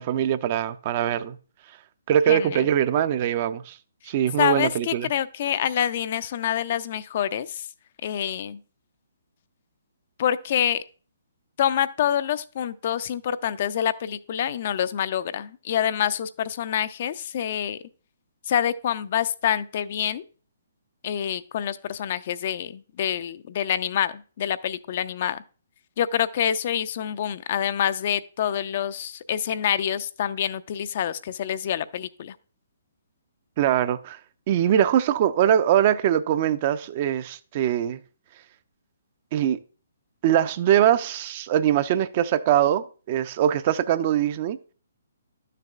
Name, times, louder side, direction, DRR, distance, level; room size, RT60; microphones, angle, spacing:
voice 1, 0.0-1.4 2.1-3.8 4.1-5.1 33.6-34.2 34.5-38.0 39.3-39.6 40.2-44.6, right 10 dB, 40° right, 0.4 m, -22 dB
voice 2, 2.3-2.7 4.4-7.7 8.0-8.6 10.2-10.8 11.6-17.8 18.5-20.2 21.0-25.4 26.0-32.4, left 10 dB, 45° left, 0.4 m, -26 dB
11.5 x 6.6 x 2.4 m
figure-of-eight pair, 135°, 0 cm